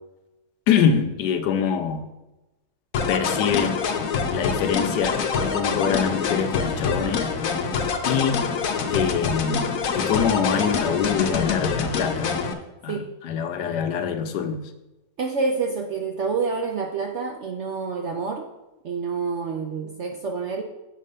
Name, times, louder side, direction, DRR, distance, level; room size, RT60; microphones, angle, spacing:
voice 1, 0.7-2.0 3.1-3.8 4.3-7.3 8.0-8.4 8.8-12.3 12.8-14.6, left 7 dB, 80° left, 8 dB, 1.3 m, -24 dB
sound 1, 2.9-12.5, left 5 dB, 60° left, 1.0 m, -25 dB
voice 2, 15.2-18.5 18.8-20.6, right 4 dB, 65° right, 3 dB, 0.7 m, -27 dB
7.5 x 4.2 x 5.4 m, 1.0 s
omnidirectional pair, 1.8 m